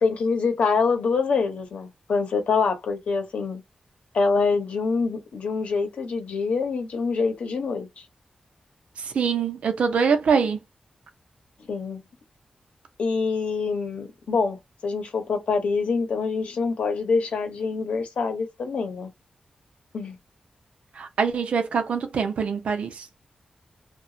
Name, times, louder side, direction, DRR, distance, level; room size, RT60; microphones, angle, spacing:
voice 1, 0.0-3.6 4.1-8.1 11.7-12.0 13.0-19.1 19.9-20.2, left 4 dB, 85° left, 0.8 m, -25 dB
voice 2, 9.0-10.6 21.0-23.1, right 6 dB, 90° right, 0.6 m, -24 dB
2.8 x 2.3 x 2.6 m
wide cardioid pair, 135°, 2 cm